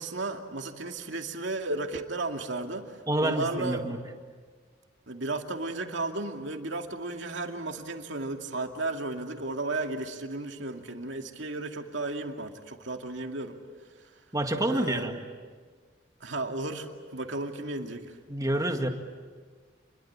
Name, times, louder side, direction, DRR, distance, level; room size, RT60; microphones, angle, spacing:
voice 1, 0.0-2.8 3.2-4.0 5.1-13.6 14.7-15.2 16.2-18.2, right 2 dB, 70° right, 3 dB, 2.4 m, -34 dB
voice 2, 3.1-4.0 14.3-15.1 18.3-18.9, right 1 dB, 20° right, 4 dB, 2.0 m, -28 dB
29.0 x 22.0 x 8.7 m, 1.5 s
head